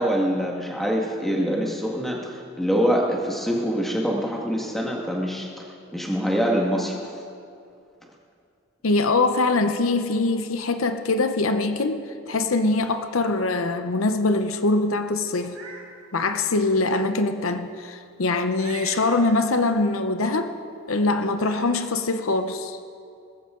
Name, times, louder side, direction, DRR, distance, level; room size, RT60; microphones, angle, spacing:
voice 1, 0.0-5.5 5.9-7.0, equal, ahead, -2 dB, 1.7 m, -24 dB
voice 2, 8.8-15.6 16.1-20.5 20.9-22.8, left 3 dB, 90° left, 8 dB, 0.8 m, -23 dB
Meow, 15.3-15.9 16.4-16.5 18.5-19.1 20.7-20.8 21.4-21.7, right 4 dB, 85° right, 2.6 m, -40 dB
19.5 x 14.5 x 3.8 m, 2.4 s
head